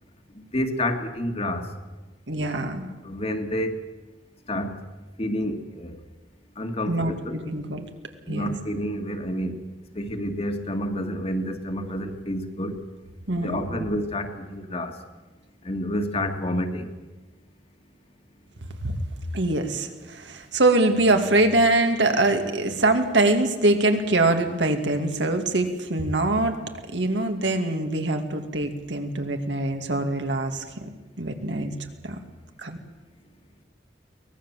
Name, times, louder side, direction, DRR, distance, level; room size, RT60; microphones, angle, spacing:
voice 1, 0.3-1.7 3.0-3.8 4.5-4.8 5.2-6.0 6.6-7.4 8.2-9.6 9.9-12.8 13.4-15.0 15.6-16.9, equal, 35° left, 5 dB, 2.1 m, -29 dB
voice 2, 2.3-2.9 6.9-7.1 7.5-7.8 8.3-8.5 13.3-13.9 18.8-19.0 19.3-26.6 26.9-30.9 31.2-31.8 32.0-32.2 32.6-32.8, right 2 dB, 85° right, 5 dB, 2.5 m, -23 dB
23.5 x 19.0 x 7.5 m, 1.2 s
head